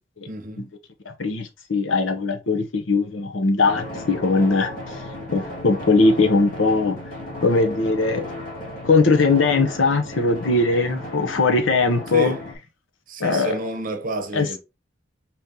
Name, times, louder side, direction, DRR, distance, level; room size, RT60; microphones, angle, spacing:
voice 1, 0.3-0.7 12.1-12.4 13.1-14.6, right 2 dB, 45° right, 0.8 m, -29 dB
voice 2, 1.1-5.0 5.3-7.0 7.4-8.2 8.8-12.4 13.2-13.6 14.3-14.5, left 3 dB, 75° left, 0.8 m, -20 dB
Drum, 3.6-12.6, left 1 dB, 50° left, 2.6 m, -35 dB
4.3 x 3.8 x 2.8 m
head